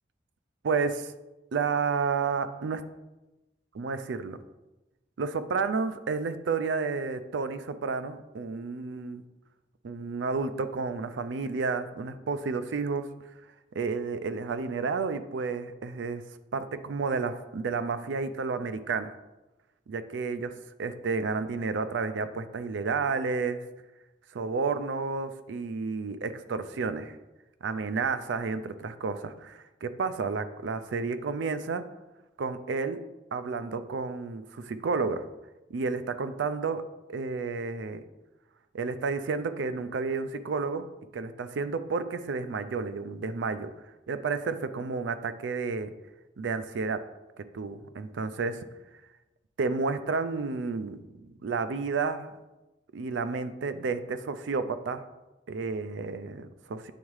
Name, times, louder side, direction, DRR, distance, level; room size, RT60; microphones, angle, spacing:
voice 1, 0.6-1.1 1.5-2.8 3.7-4.4 5.2-9.2 9.8-13.1 13.8-16.2 16.5-19.1 19.9-20.5 20.8-23.6 24.3-27.1 27.6-31.8 32.4-33.0 33.3-35.3 35.7-36.8 37.1-38.0 38.7-40.8 41.1-43.7 44.1-45.9 46.4-47.0 47.5-48.6 49.6-51.0 51.4-52.3 52.9-55.0 55.5-56.9, right 4 dB, 85° right, 11 dB, 0.4 m, -31 dB
8.9 x 3.5 x 3.2 m, 1.0 s
head